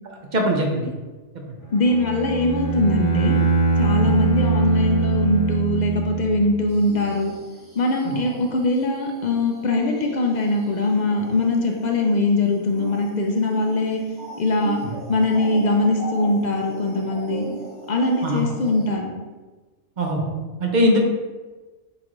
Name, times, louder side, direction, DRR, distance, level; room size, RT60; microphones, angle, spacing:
voice 1, 0.3-0.9 1.5-1.6 8.0-8.2 18.2-18.4 20.0-20.3 20.6-21.0, equal, 45° right, 0 dB, 0.7 m, -21 dB
voice 2, 1.7-3.4 3.8-7.3 7.7-14.0 14.4-14.8 15.1-17.5 17.9-19.1, left 2 dB, 55° left, 1 dB, 0.5 m, -21 dB
Bowed string instrument, 1.8-6.6, right 4 dB, 85° left, 1.3 m, -22 dB
sound 1, 6.7-18.9, right 2 dB, 70° right, 1.5 m, -39 dB
6.5 x 2.5 x 3.0 m, 1.3 s
omnidirectional pair, 1.2 m